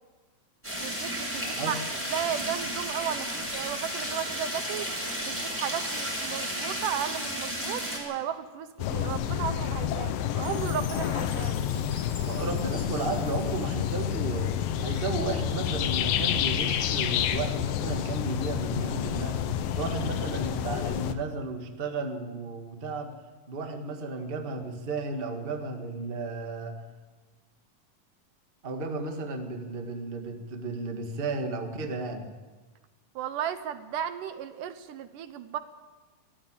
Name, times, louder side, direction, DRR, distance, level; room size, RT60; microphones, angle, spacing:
sound 1, 0.6-8.0, equal, 5° right, 5.6 m, -33 dB
voice 1, 0.8-4.9 5.2-11.6 33.2-35.6, right 9 dB, 75° right, 10 dB, 2.3 m, -34 dB
voice 2, 1.4-1.8 12.3-19.4 19.7-23.1 23.5-26.7 28.6-32.3, right 3 dB, 25° right, 4 dB, 1.2 m, -33 dB
sound 2, 8.8-21.1, left 10 dB, 80° left, 2.7 m, -29 dB
Chime, 10.4-14.7, left 4 dB, 65° left, 5.6 m, -48 dB
22.5 x 14.0 x 8.9 m, 1.3 s
omnidirectional pair, 4.0 m